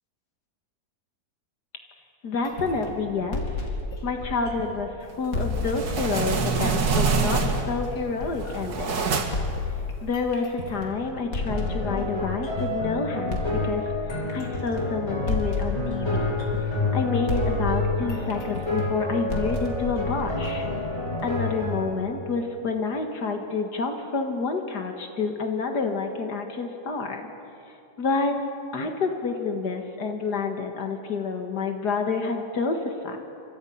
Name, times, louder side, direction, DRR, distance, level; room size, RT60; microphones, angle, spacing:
voice 1, 2.2-3.7 4.0-9.1 10.0-13.9 14.1-16.4 16.6-20.7 21.2-27.2 28.0-28.3 28.7-33.2, left 4 dB, 75° left, 4 dB, 2.3 m, -29 dB
sound 1, 2.4-4.9 5.3-8.8 9.3-12.9 13.3-17.0 17.3-21.4, left 2 dB, 55° left, 3.3 m, -32 dB
sound 2, 5.4-7.8 8.3-9.6, right 5 dB, 70° right, 2.1 m, -25 dB
sound 3, 11.5-21.9, left 2 dB, 40° left, 7.2 m, -29 dB
29.0 x 25.0 x 5.7 m, 2.5 s
omnidirectional pair, 1.8 m